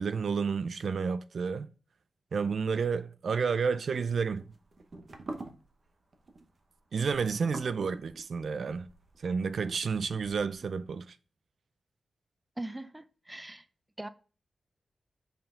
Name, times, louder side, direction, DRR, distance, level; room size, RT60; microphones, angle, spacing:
voice 1, 0.0-1.7 2.3-4.4 6.9-8.9 9.2-11.2, right 5 dB, 70° right, 0.4 m, -30 dB
sound 1, 3.7-10.7, right 2 dB, 50° right, 1.0 m, -47 dB
voice 2, 12.6-13.6 14.0-14.1, right 1 dB, 10° right, 0.4 m, -40 dB
5.7 x 4.4 x 3.7 m
wide cardioid pair, 105°, 0 cm